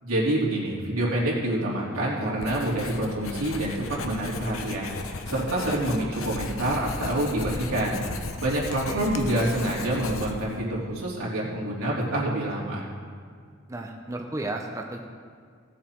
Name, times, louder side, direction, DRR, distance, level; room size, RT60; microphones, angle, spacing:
voice 1, 0.0-8.0 8.4-12.8, right 1 dB, 80° right, -5 dB, 3.2 m, -27 dB
Writing, 2.4-10.6, left 3 dB, 75° left, 0.9 m, -36 dB
voice 2, 13.7-15.0, right 2 dB, 15° right, 2 dB, 0.6 m, -33 dB
17.0 x 7.4 x 4.6 m, 2.1 s
head